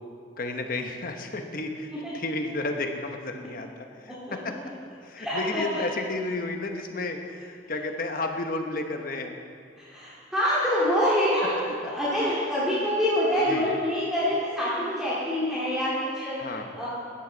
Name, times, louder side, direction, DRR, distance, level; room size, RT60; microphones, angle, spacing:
voice 1, 0.4-4.5 5.0-9.3 13.5-13.7 16.4-16.7, left 2 dB, 50° left, 4 dB, 1.1 m, -32 dB
voice 2, 5.2-5.8 9.8-11.5 11.8-16.9, equal, 5° right, -10 dB, 2.4 m, -26 dB
15.0 x 11.0 x 4.0 m, 2.3 s
head